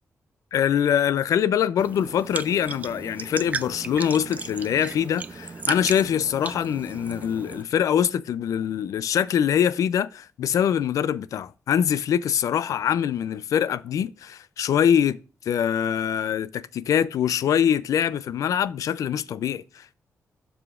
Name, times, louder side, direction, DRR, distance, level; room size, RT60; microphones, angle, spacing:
voice 1, 0.5-15.2 15.5-19.9, left 9 dB, 80° left, 0.4 m, -24 dB
sound 1, 1.8-7.6, right 4 dB, 25° right, 0.3 m, -35 dB
12.0 x 4.9 x 2.4 m
wide cardioid pair, 175°, 6 cm